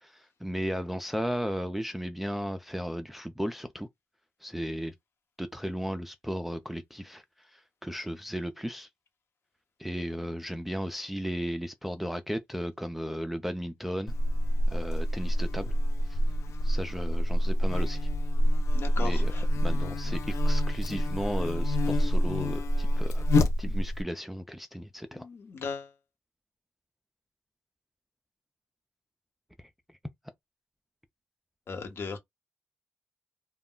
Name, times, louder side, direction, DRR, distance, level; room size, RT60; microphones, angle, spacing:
voice 1, 0.0-3.9 4.4-4.9 5.4-8.9 9.8-14.1 14.7-15.7 16.1-16.2 16.6-18.1 19.0-23.3 23.6-25.3 29.6-29.7, equal, 5° right, 0.4 m, -35 dB
Buzz, 14.1-24.0, equal, 70° left, 0.5 m, -26 dB
voice 2, 18.7-19.4 25.1-25.9 31.7-32.2, left 4 dB, 55° left, 0.9 m, -37 dB
2.2 x 2.1 x 3.7 m
cardioid pair, 105°, 5 cm